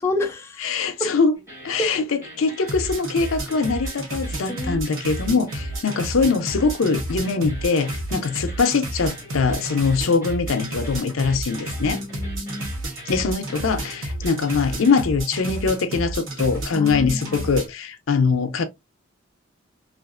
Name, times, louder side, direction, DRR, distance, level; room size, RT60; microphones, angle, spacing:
voice 1, 0.0-0.7 1.0-1.1 1.8-1.9 4.5-5.2 8.1-8.3 11.8-12.7 16.7-17.5, left 1 dB, 15° left, 0.4 m, -29 dB
voice 2, 0.6-1.3 1.6-12.0 13.1-18.6, left 4 dB, 80° left, 0.5 m, -22 dB
sound 1, 1.3-17.5, equal, 15° right, 1.5 m, -43 dB
sound 2, 2.6-17.7, right 1 dB, 70° right, 1.0 m, -31 dB
3.0 x 2.5 x 2.4 m
head